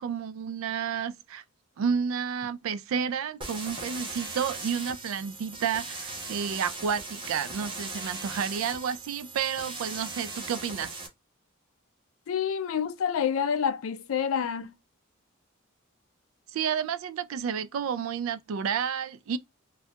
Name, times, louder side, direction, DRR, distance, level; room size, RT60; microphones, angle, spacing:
voice 1, 0.0-1.4 1.8-10.9 16.5-19.4, right 7 dB, 80° right, 0.3 m, -31 dB
sound 1, 3.4-11.1, right 3 dB, 25° right, 0.7 m, -39 dB
voice 2, 12.3-14.7, left 7 dB, 80° left, 0.4 m, -28 dB
2.8 x 2.3 x 3.1 m
head